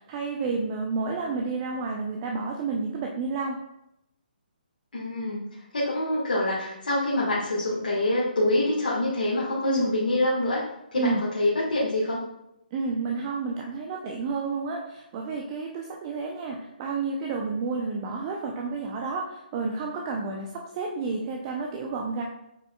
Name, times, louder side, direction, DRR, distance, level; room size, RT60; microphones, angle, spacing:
voice 1, 0.0-3.6 9.6-10.0 11.0-11.2 12.7-22.2, right 4 dB, 30° right, 0 dB, 0.7 m, -30 dB
voice 2, 4.9-5.5 5.7-10.6 10.9-12.2, left 1 dB, 75° left, -6 dB, 1.8 m, -25 dB
7.8 x 5.4 x 2.3 m, 0.84 s
figure-of-eight pair, 140°, 5 cm